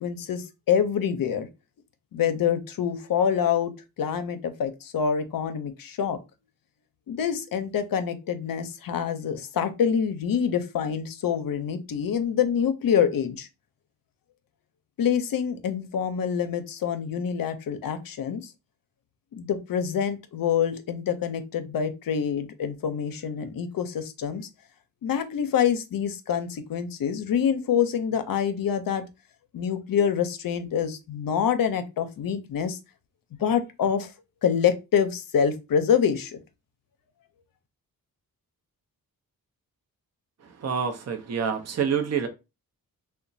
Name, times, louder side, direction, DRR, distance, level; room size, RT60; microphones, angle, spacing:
voice 1, 0.0-1.5 2.1-3.7 4.0-6.2 7.1-13.5 15.0-18.5 19.3-24.5 25.0-29.0 29.5-32.8 33.4-34.1 34.4-36.4, left 8 dB, 65° left, 0.6 m, -26 dB
voice 2, 40.6-42.3, right 7 dB, 45° right, 0.6 m, -27 dB
2.9 x 2.2 x 2.6 m
cardioid pair, 50°, 37 cm